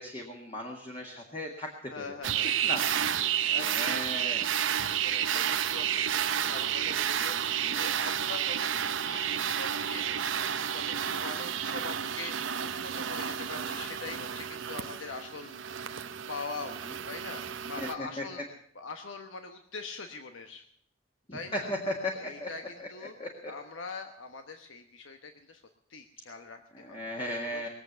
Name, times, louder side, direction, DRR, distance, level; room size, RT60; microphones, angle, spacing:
voice 1, 0.0-1.7 2.6-3.3 3.6-4.5 7.6-7.8 13.6-13.7 17.8-18.2 21.3-22.5 22.8-22.9 23.2-23.5 26.8-27.7, left 1 dB, 30° left, 0 dB, 1.8 m, -36 dB
voice 2, 1.9-2.6 3.5-4.7 5.0-15.6 16.3-16.7 17.1-17.4 17.7-18.4 18.7-20.7 21.3-21.7 22.1-23.1 23.4-25.6 25.9-27.0 27.5-27.6, left 4 dB, 80° left, 5 dB, 1.1 m, -43 dB
sound 1, 2.2-17.9, right 9 dB, 75° right, 0.7 m, -31 dB
21.0 x 7.9 x 8.1 m, 0.65 s
head